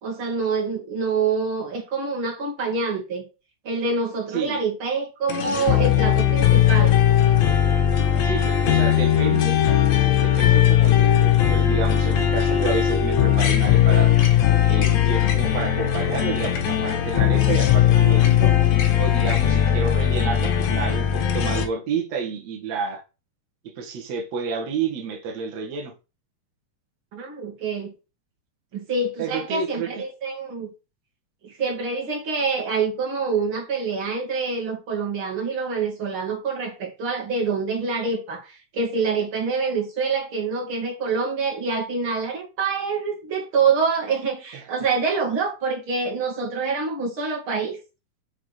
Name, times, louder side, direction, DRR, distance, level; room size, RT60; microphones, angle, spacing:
voice 1, 0.0-3.2 3.6-6.9 27.1-27.9 28.7-30.7 31.4-47.8, right 4 dB, 40° right, 3.1 m, -26 dB
voice 2, 4.3-4.6 8.2-9.6 10.2-14.1 14.7-18.5 19.0-23.0 23.7-25.9 29.2-30.0 44.5-44.7, right 5 dB, 55° right, 2.8 m, -30 dB
sound 1, 5.3-21.6, left 10 dB, 60° left, 2.3 m, -19 dB
6.7 x 6.6 x 5.1 m
omnidirectional pair, 4.0 m